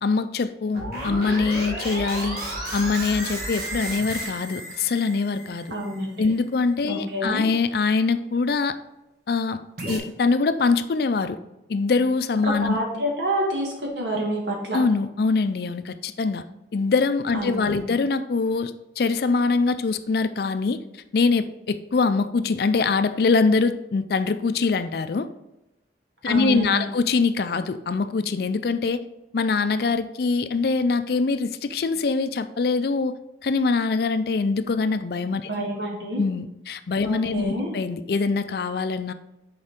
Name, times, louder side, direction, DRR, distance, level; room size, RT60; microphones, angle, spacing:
voice 1, 0.0-2.4 2.7-5.7 6.2-8.7 9.3-9.6 9.9-11.4 11.7-12.8 14.7-16.4 16.7-20.8 21.1-25.3 26.2-29.0 29.3-33.1 33.4-35.4 36.2-39.1, left 4 dB, 60° left, 11 dB, 0.4 m, -23 dB
sound 1, 0.7-6.0 9.8-10.0, right 1 dB, 55° right, 1.8 m, -32 dB
voice 2, 5.7-6.3 6.9-7.5 12.4-14.8 17.3-17.9 26.2-26.9 35.5-36.2 37.0-37.7, right 1 dB, 75° right, -1 dB, 1.8 m, -28 dB
6.5 x 4.8 x 3.5 m, 0.93 s
head